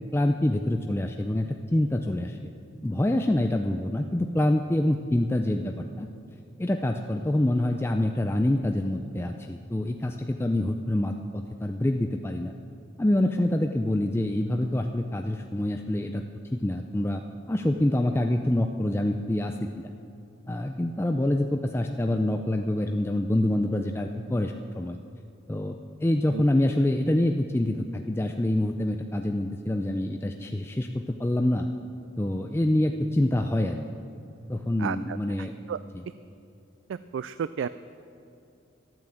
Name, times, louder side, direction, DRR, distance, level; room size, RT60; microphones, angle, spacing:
voice 1, 0.1-2.4 2.8-6.1 6.6-12.5 13.0-16.2 16.5-17.2 17.5-19.9 20.5-25.0 25.5-31.7 32.2-33.8 34.5-35.5, left 1 dB, 15° left, 4 dB, 0.4 m, -26 dB
voice 2, 34.8-35.8 36.9-37.7, right 7 dB, 85° right, 14 dB, 0.3 m, -33 dB
12.5 x 9.1 x 7.7 m, 2.6 s
head